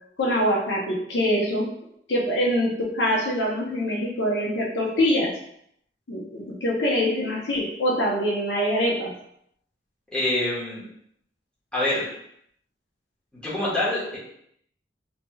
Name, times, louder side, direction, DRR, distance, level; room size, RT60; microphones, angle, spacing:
voice 1, 0.2-1.7 2.1-5.3 6.1-9.1, equal, 75° left, -3 dB, 0.6 m, -24 dB
voice 2, 10.1-10.8 11.7-12.0 13.3-14.2, left 1 dB, 5° left, -9 dB, 1.1 m, -25 dB
3.0 x 2.9 x 2.2 m, 0.72 s
head